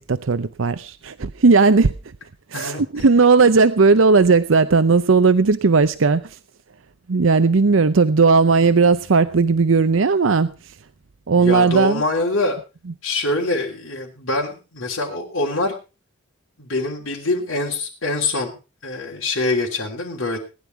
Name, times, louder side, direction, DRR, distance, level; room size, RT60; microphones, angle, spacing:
voice 1, 0.0-1.9 2.5-6.4 7.1-10.5 11.3-12.0, right 4 dB, 75° right, 13 dB, 0.7 m, -16 dB
voice 2, 2.5-3.1 11.4-12.6 13.0-15.7 16.6-18.6 18.8-20.4, left 2 dB, 85° left, -2 dB, 3.2 m, -24 dB
19.0 x 11.0 x 4.6 m, 0.33 s
head